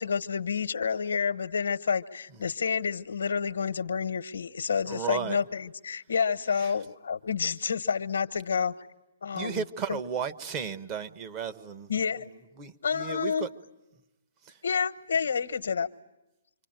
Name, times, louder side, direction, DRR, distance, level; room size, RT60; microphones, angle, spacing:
voice 1, 0.0-8.7 9.2-9.6 9.9-10.0 11.9-12.3 12.8-13.5 14.6-15.9, left 6 dB, 80° left, 13 dB, 1.1 m, -29 dB
voice 2, 4.9-5.4 6.6-6.7 9.3-11.9 12.6-13.5 14.4-14.6, right 7 dB, 25° right, 10 dB, 1.0 m, -34 dB
27.0 x 25.0 x 9.0 m, 0.97 s
hypercardioid pair, 160°, 0 cm